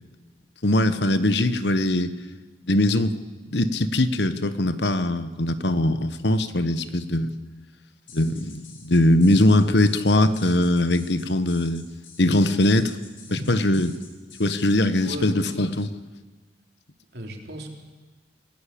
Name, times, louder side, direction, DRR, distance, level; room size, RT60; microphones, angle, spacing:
voice 1, 0.6-2.1 2.7-3.1 3.5-7.3 8.1-11.8 12.2-13.0 13.3-13.9 14.4-15.9, left 1 dB, 70° left, 12 dB, 1.3 m, -21 dB
sound 1, 8.1-14.7, left 5 dB, 50° left, 4.0 m, -48 dB
voice 2, 13.3-13.6 15.0-15.7 17.1-17.7, right 1 dB, 60° right, 2 dB, 3.8 m, -36 dB
27.5 x 18.0 x 8.6 m, 1.3 s
head